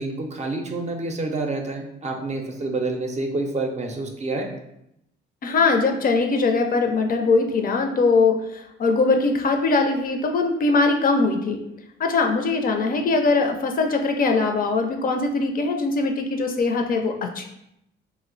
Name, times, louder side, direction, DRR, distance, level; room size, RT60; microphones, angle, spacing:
voice 1, 0.0-4.5, right 2 dB, 35° right, 3 dB, 0.5 m, -28 dB
voice 2, 5.4-11.6 12.0-17.5, left 3 dB, 45° left, 4 dB, 0.4 m, -21 dB
2.6 x 2.0 x 3.8 m, 0.81 s
cardioid pair, 90°, 20 cm